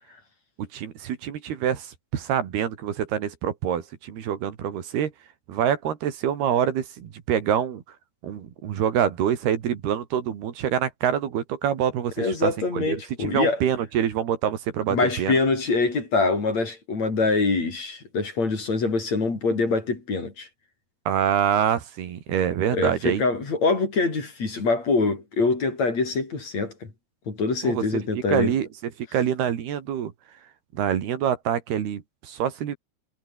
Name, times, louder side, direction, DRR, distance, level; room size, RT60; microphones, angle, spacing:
voice 1, 0.6-5.1 5.5-7.8 8.2-15.3 21.1-23.2 27.6-27.9 28.3-28.7 29.0-30.1 30.7-32.8, right 9 dB, 70° right, 4.2 m, -26 dB
voice 2, 12.2-13.6 14.9-20.5 22.7-26.9 27.3-28.5, left 3 dB, 40° left, 6.4 m, -24 dB
omnidirectional pair, 4.8 m